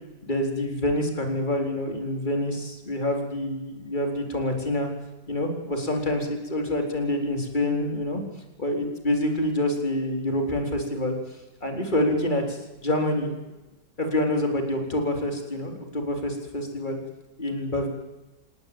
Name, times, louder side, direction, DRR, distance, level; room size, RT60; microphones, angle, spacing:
voice 1, 0.2-4.9 5.3-8.2 8.6-11.2 11.6-13.3 14.0-17.0 17.4-17.9, left 1 dB, 25° left, 3 dB, 4.4 m, -27 dB
28.0 x 18.5 x 8.9 m, 1.1 s
omnidirectional pair, 1.9 m